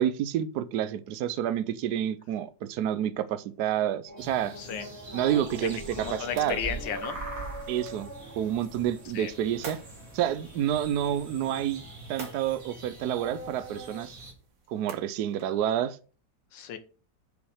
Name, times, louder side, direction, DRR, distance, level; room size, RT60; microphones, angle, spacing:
voice 1, 0.0-4.6 5.1-6.6 7.7-8.1 8.4-9.8 10.1-11.8 12.1-14.2 14.7-16.0, right 10 dB, 70° right, 1.1 m, -29 dB
sound 1, 4.1-14.0, equal, 45° left, 3.2 m, -44 dB
sound 2, 4.2-14.3, right 2 dB, 50° right, 2.8 m, -44 dB
sound 3, 5.3-15.6, right 4 dB, 85° right, 2.5 m, -51 dB
voice 2, 5.9-7.2 9.1-9.3 16.5-16.8, left 8 dB, 85° left, 1.7 m, -34 dB
6.5 x 5.7 x 6.3 m
omnidirectional pair, 1.9 m